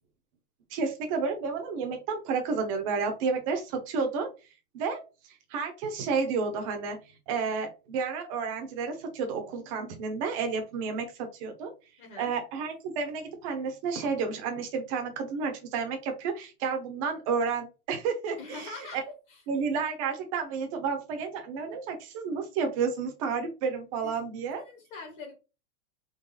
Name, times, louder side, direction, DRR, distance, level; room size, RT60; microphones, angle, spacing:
voice 1, 0.7-4.3 4.7-5.0 5.5-7.0 7.3-11.7 12.2-19.0 19.5-24.6, right 5 dB, 25° right, 4 dB, 0.7 m, -31 dB
voice 2, 12.0-12.3 18.4-19.0 19.3-19.4 24.0-24.1 24.7-25.3, left 3 dB, 35° left, 1 dB, 1.1 m, -43 dB
3.9 x 3.1 x 3.9 m, 0.30 s
supercardioid pair, 175°, 44 cm